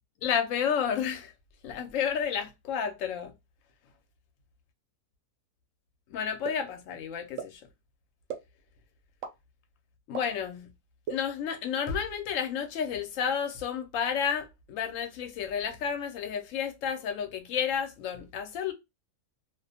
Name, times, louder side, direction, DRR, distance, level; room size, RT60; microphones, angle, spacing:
voice 1, 0.2-1.3 1.6-3.3 6.1-7.6 10.1-10.7 11.1-18.7, left 7 dB, 65° left, 0.9 m, -31 dB
sound 1, 6.4-6.5 7.4-7.5 8.3-8.4 9.2-9.3 10.1-10.2 11.0-11.1, right 8 dB, 70° right, 0.8 m, -34 dB
2.4 x 2.1 x 2.6 m
omnidirectional pair, 1.6 m